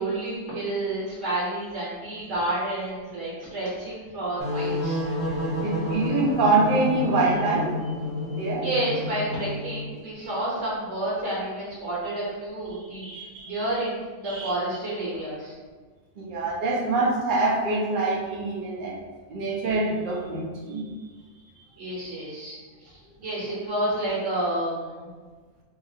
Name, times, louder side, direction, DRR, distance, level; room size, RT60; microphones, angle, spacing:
voice 1, 0.0-5.0 8.6-13.0 13.4-15.5 21.8-22.6 22.8-25.1, right 1 dB, 65° right, -7 dB, 1.3 m, -30 dB
sound 1, 4.4-9.9, left 1 dB, 10° left, 0.8 m, -30 dB
voice 2, 5.6-7.7 8.4-8.6 12.7-13.5 14.2-14.5 16.2-19.0 19.3-20.8, right 3 dB, 50° right, -2 dB, 0.7 m, -25 dB
3.9 x 2.4 x 2.7 m, 1.5 s
omnidirectional pair, 1.4 m